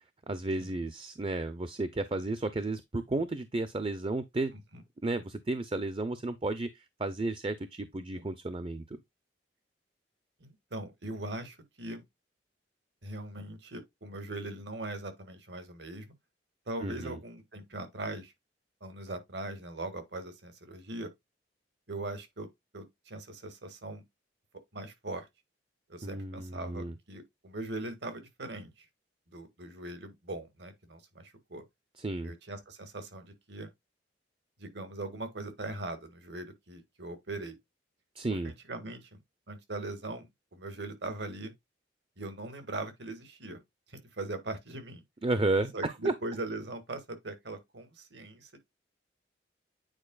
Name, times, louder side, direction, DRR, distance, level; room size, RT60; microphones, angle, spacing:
voice 1, 0.3-4.5 5.0-9.0 16.8-17.1 26.0-26.9 32.0-32.3 38.2-38.5 45.2-46.1, right 2 dB, 30° right, 0.6 m, -32 dB
voice 2, 10.4-12.0 13.0-16.1 16.7-18.3 18.8-21.1 21.9-22.5 22.7-24.0 24.7-25.3 25.9-28.9 29.3-31.6 32.2-33.7 34.6-37.6 38.3-39.2 39.5-41.5 42.2-43.6 43.9-45.0 45.7-48.6, right 2 dB, 65° right, 1.8 m, -40 dB
8.9 x 4.6 x 2.4 m
head